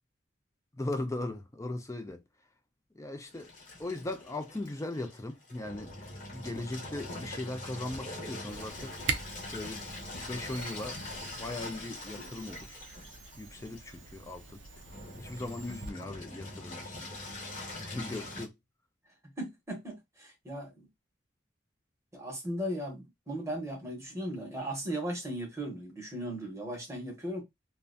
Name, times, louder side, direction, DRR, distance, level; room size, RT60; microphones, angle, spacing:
voice 1, 0.7-2.2 2.9-3.5 3.8-5.9 6.3-9.0 9.5-9.9 10.2-11.0 11.2-12.8 13.4-14.6 15.2-17.1 17.8-18.5, left 2 dB, 15° left, 0.4 m, -38 dB
Engine, 3.3-18.5, left 2 dB, 45° left, 0.8 m, -43 dB
Camera, 8.5-15.9, right 5 dB, 70° right, 0.4 m, -42 dB
voice 2, 19.4-20.9 22.1-27.4, right 1 dB, 15° right, 0.9 m, -37 dB
2.4 x 2.2 x 2.4 m
head